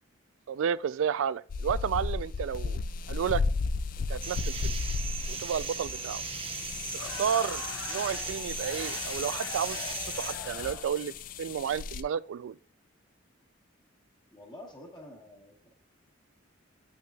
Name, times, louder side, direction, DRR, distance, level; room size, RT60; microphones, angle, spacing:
voice 1, 0.5-2.8 3.1-3.4 4.1-4.7 5.3-6.2 6.9-7.6 7.9-11.1 11.4-12.6, right 8 dB, 75° right, 0.3 m, -31 dB
sound 1, 1.5-12.0, left 4 dB, 45° left, 0.3 m, -35 dB
sound 2, 4.2-10.3, right 6 dB, 30° right, 0.6 m, -38 dB
Crowd, 6.8-11.0, left 3 dB, 80° left, 1.2 m, -43 dB
voice 2, 14.3-15.7, left 1 dB, 20° left, 1.1 m, -48 dB
9.1 x 5.8 x 2.3 m
head